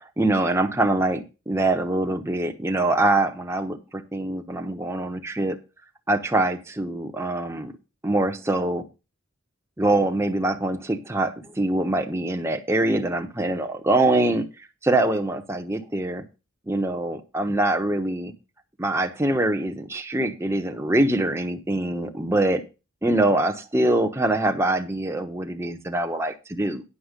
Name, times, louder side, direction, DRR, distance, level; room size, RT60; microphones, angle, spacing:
voice 1, 0.0-5.6 6.1-7.7 8.0-8.8 9.8-14.4 14.8-16.2 16.7-18.3 18.8-22.6 23.0-26.8, right 2 dB, 10° right, 1.1 m, -24 dB
9.9 x 6.8 x 5.2 m
head